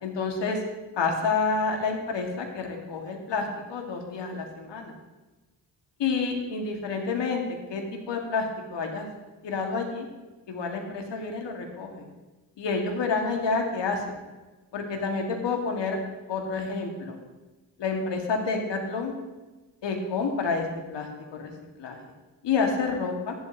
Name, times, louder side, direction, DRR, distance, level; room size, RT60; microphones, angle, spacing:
voice 1, 0.0-0.6 0.9-4.9 6.0-7.4 7.7-9.0 9.4-10.1 10.5-12.0 12.6-14.2 14.7-16.0 16.3-17.2 17.8-19.1 19.8-21.5 21.8-22.0 22.4-23.3, left 4 dB, 55° left, 2 dB, 2.3 m, -29 dB
14.0 x 11.0 x 3.1 m, 1.2 s
hypercardioid pair, 45°, 50 cm